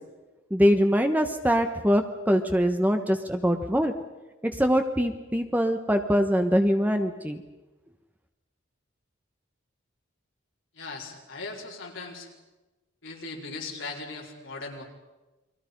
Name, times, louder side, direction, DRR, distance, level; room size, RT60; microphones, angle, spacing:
voice 1, 0.5-3.9 4.4-7.4, equal, 10° right, 6 dB, 1.2 m, -23 dB
voice 2, 10.7-12.3 13.0-14.8, left 3 dB, 70° left, -1 dB, 4.6 m, -38 dB
29.5 x 22.5 x 5.4 m, 1.1 s
head